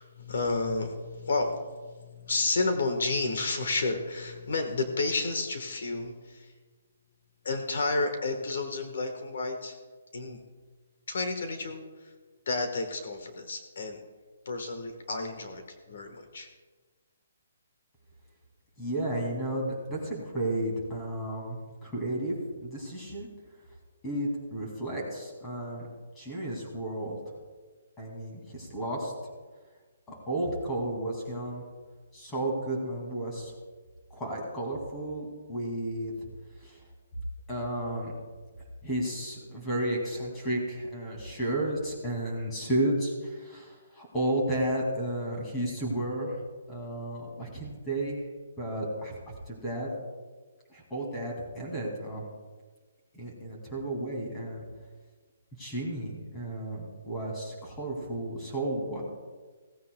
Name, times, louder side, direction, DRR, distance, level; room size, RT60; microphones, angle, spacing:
voice 1, 0.0-6.5 7.4-9.8 10.1-10.4 11.1-11.8 12.5-14.0 14.4-16.5, left 3 dB, 60° left, 6 dB, 1.3 m, -31 dB
voice 2, 18.8-22.4 22.6-23.3 24.0-25.9 26.2-27.2 28.0-29.1 30.1-31.6 32.1-33.5 34.1-36.1 36.6-36.8 37.5-38.1 38.8-46.4 46.7-48.3 48.6-49.2 49.5-49.9 50.7-52.2 53.1-54.7 55.6-59.0, right 1 dB, 10° left, -2 dB, 2.3 m, -32 dB
16.5 x 15.5 x 2.3 m, 1.4 s
hypercardioid pair, 175°, 0 cm